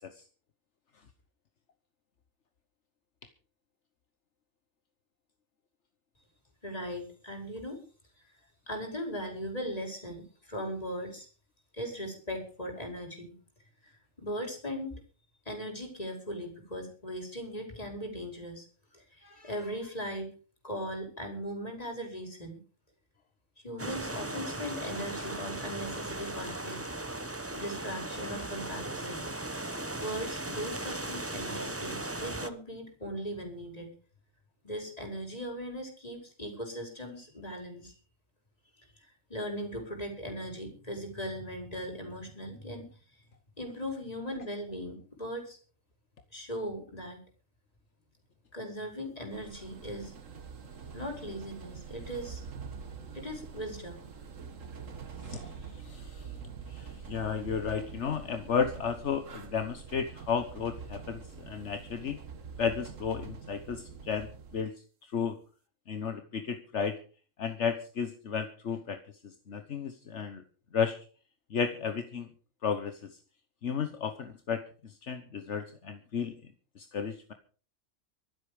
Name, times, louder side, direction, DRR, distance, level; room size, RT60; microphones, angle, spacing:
voice 1, 6.6-7.8 8.7-11.3 11.7-13.3 13.8-13.9 14.2-15.0 15.4-18.6 18.9-20.3 20.6-22.6 23.6-26.8 27.5-29.3 29.9-33.9 34.6-37.9 39.3-42.9 43.6-45.6 46.3-47.2 48.5-50.1 50.9-52.4 53.1-54.0, equal, 30° left, 2 dB, 5.1 m, -38 dB
sound 1, 23.8-32.5, right 2 dB, 10° right, 0.9 m, -37 dB
sound 2, 49.3-64.6, right 6 dB, 90° right, 1.7 m, -45 dB
voice 2, 55.8-56.3 56.7-62.2 62.6-64.3 64.5-64.7 65.1-65.3 65.9-66.9 67.4-69.0 69.5-70.4 70.7-71.0 71.5-72.3 72.6-73.0 73.6-74.6 75.1-76.3 76.8-77.3, left 6 dB, 70° left, 8 dB, 1.5 m, -33 dB
24.5 x 8.2 x 5.1 m, 0.40 s
omnidirectional pair, 1.3 m